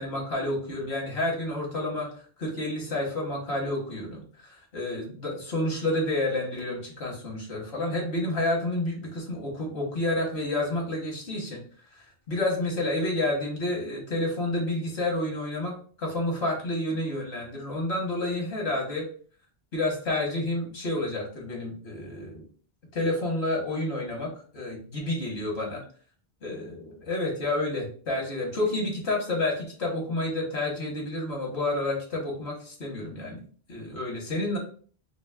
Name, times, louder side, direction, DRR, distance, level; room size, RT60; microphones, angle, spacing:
voice 1, 0.0-2.1 2.4-11.6 12.3-19.1 19.7-22.4 22.9-24.3 24.5-25.8 26.4-33.4 33.7-34.6, left 2 dB, 75° left, -1 dB, 1.5 m, -29 dB
5.9 x 2.0 x 2.4 m, 0.44 s
omnidirectional pair, 1.1 m